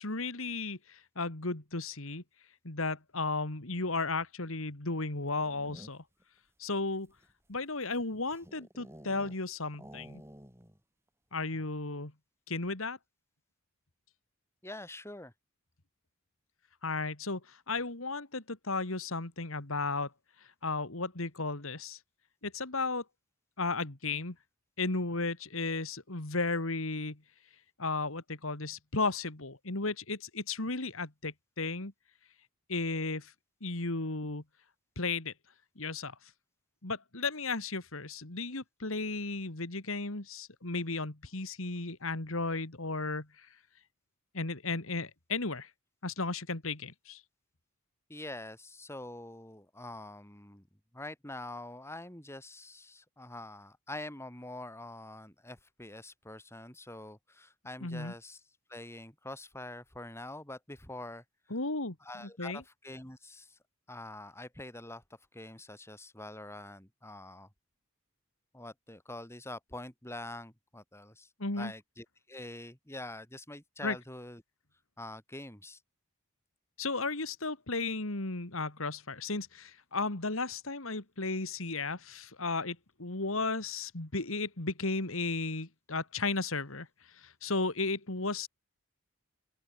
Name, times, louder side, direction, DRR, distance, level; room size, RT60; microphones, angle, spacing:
voice 1, 0.0-2.2 2.6-6.0 6.6-7.1 7.5-10.2 11.3-12.1 12.5-13.0 16.8-20.1 20.6-22.0 22.4-23.0 23.6-24.4 24.8-27.2 27.8-31.9 32.7-33.3 33.6-34.4 35.0-35.3 35.8-36.1 36.8-43.5 44.3-45.7 46.0-47.2 57.8-58.1 61.5-62.6 71.4-71.7 73.8-74.0 76.8-88.5, left 3 dB, 65° left, 2.5 m, -34 dB
sound 1, 5.2-6.2 6.9-9.5 9.7-10.8 11.1-11.2 11.5-11.9, equal, 10° right, 4.7 m, -52 dB
voice 2, 14.6-15.3 48.1-50.6 50.9-58.4 58.7-61.2 62.0-63.6 63.9-65.0 65.3-67.5 68.5-71.3 71.6-74.4 75.0-75.8, left 1 dB, 10° left, 5.5 m, -45 dB
open air
head